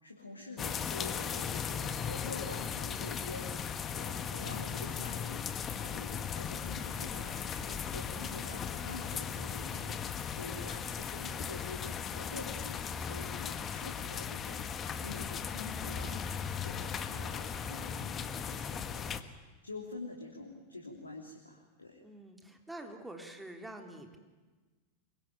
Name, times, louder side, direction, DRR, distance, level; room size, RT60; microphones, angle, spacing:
voice 1, 0.0-5.4 5.7-19.1 19.6-22.0, left 2 dB, 80° left, 1 dB, 3.3 m, -47 dB
sound 1, 0.6-19.2, left 7 dB, 25° left, 1.6 m, -37 dB
voice 2, 22.0-24.2, right 1 dB, 5° right, 3 dB, 3.7 m, -46 dB
27.0 x 23.0 x 9.3 m, 1.3 s
figure-of-eight pair, 90°, 0 cm